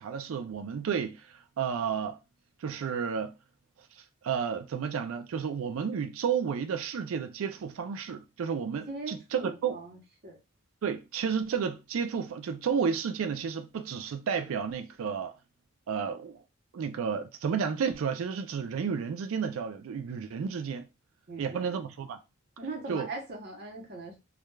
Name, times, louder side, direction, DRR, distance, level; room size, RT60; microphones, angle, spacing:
voice 1, 0.0-2.2 2.6-3.3 4.2-9.8 10.8-15.3 15.9-16.4 16.7-20.9 21.4-22.2 22.9-23.1, right 6 dB, 75° right, 0.3 m, -32 dB
voice 2, 8.9-10.4 21.3-21.8 22.6-24.2, right 2 dB, 50° right, 0.8 m, -40 dB
3.1 x 2.3 x 2.2 m
head